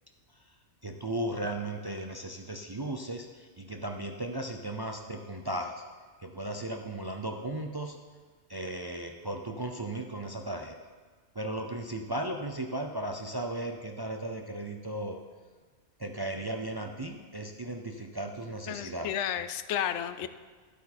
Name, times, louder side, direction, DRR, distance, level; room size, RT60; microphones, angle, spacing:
voice 1, 0.8-5.7 6.2-8.0 8.5-10.7 11.4-15.2 16.0-19.1, right 1 dB, 30° right, 3 dB, 0.4 m, -36 dB
voice 2, 18.7-20.3, left 10 dB, 80° left, 12 dB, 0.9 m, -32 dB
12.0 x 8.3 x 4.3 m, 1.5 s
omnidirectional pair, 1.2 m